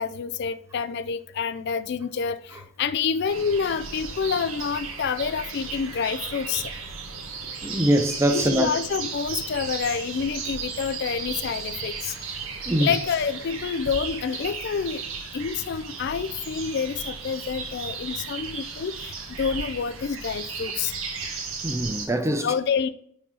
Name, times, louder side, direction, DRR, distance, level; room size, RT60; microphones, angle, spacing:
voice 1, 0.0-6.7 8.3-12.1 12.8-15.0 15.3-20.9 22.4-22.9, left 6 dB, 55° left, 0.4 m, -28 dB
sound 1, 3.2-22.1, right 5 dB, 70° right, 1.3 m, -35 dB
voice 2, 7.6-8.7 12.7-12.9 21.6-22.5, right 1 dB, 15° right, 0.5 m, -23 dB
5.3 x 5.0 x 4.1 m
head